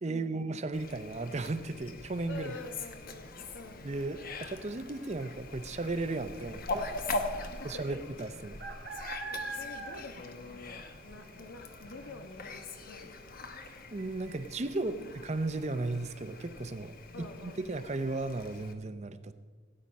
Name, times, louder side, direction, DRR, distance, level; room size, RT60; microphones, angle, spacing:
voice 1, 0.0-2.5 3.8-6.9 7.6-8.6 13.9-15.0 15.2-16.9 17.4-19.3, right 2 dB, 35° right, 11 dB, 0.6 m, -35 dB
Fowl, 0.7-18.7, left 2 dB, 50° left, 1.0 m, -42 dB
voice 2, 2.2-3.9 7.3-8.0 9.3-13.2 14.9-15.1 17.1-17.6, left 3 dB, 80° left, 7 dB, 1.2 m, -47 dB
sound 1, 3.9-16.5, right 2 dB, 60° right, 1.4 m, -48 dB
17.0 x 8.7 x 5.3 m, 1.5 s
head